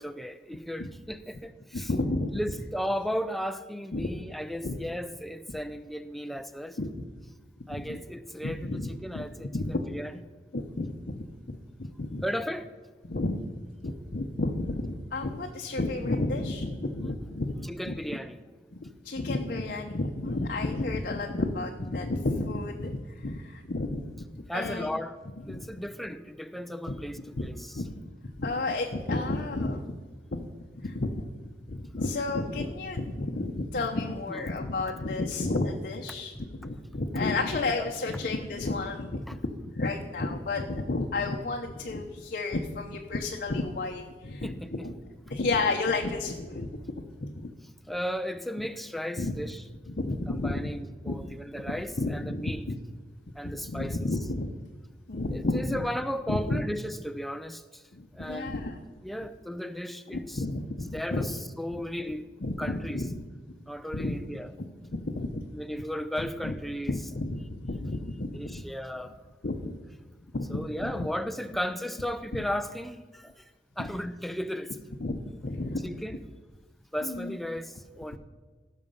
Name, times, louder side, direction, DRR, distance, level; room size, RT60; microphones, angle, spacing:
voice 1, 0.0-1.9 2.3-6.8 7.7-10.2 12.2-12.7 17.7-18.4 24.5-25.2 25.4-27.8 29.0-29.4 34.3-34.4 36.4-36.5 37.8-37.9 39.2-39.4 44.4-44.9 47.9-49.6 50.3-52.6 53.4-54.1 55.3-57.8 58.1-58.6 59.0-60.4 60.9-62.3 62.6-63.0 63.7-64.5 65.5-66.9 68.3-69.2 70.5-74.8 75.8-76.2 76.9-78.2, equal, ahead, 0.5 m, -35 dB
voice 2, 1.7-2.5 3.9-4.1 4.6-4.8 5.5-5.6 6.8-6.9 7.7-8.0 8.4-9.2 9.5-9.9 10.5-12.2 13.0-13.5 13.8-18.0 18.7-24.9 25.4-25.7 26.9-27.5 27.7-30.0 30.3-30.5 30.7-31.2 31.7-44.9 45.3-47.0 47.2-47.5 48.6-48.7 49.2-49.3 49.9-50.7 51.0-51.2 51.7-52.7 53.4-54.5 55.1-55.9 56.3-56.6 57.9-58.8 60.1-61.3 62.4-63.2 63.9-64.2 64.9-65.4 66.2-66.6 66.9-68.6 69.4-69.8 70.3-71.1 72.3-72.4 73.8-74.0 75.0-76.2 77.0-77.4, left 2 dB, 55° left, 0.8 m, -32 dB
16.5 x 6.5 x 5.5 m
head